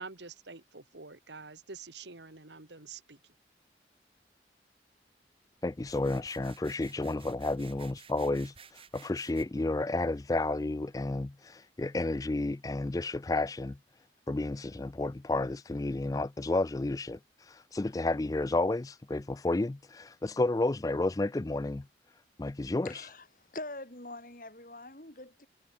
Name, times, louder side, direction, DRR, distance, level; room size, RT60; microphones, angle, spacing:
voice 1, 0.0-3.2, right 4 dB, 80° right, 2.1 m, -47 dB
voice 2, 5.6-13.8 14.3-21.8 22.4-23.1, left 2 dB, 20° left, 0.4 m, -31 dB
sound 1, 5.8-9.4, right 6 dB, 30° right, 6.3 m, -55 dB
voice 3, 22.8-25.5, left 2 dB, 50° left, 4.3 m, -44 dB
head